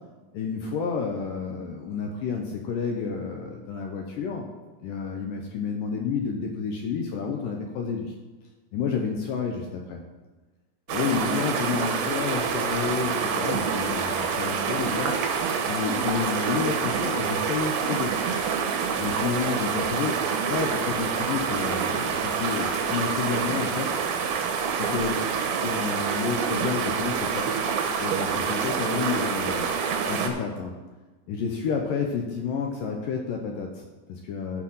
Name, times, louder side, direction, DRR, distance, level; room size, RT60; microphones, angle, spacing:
voice 1, 0.3-4.5 4.8-8.1 8.7-10.0 10.9-15.1 15.7-18.1 19.0-20.2 20.5-24.0 24.7-25.2 25.6-27.5 28.0-29.7 30.1-30.7 31.3-34.6, left 6 dB, 75° left, 2 dB, 2.0 m, -30 dB
sound 1, 10.9-30.3, right 6 dB, 75° right, 2.6 m, -27 dB
13.5 x 4.7 x 5.5 m, 1.2 s
omnidirectional pair, 4.6 m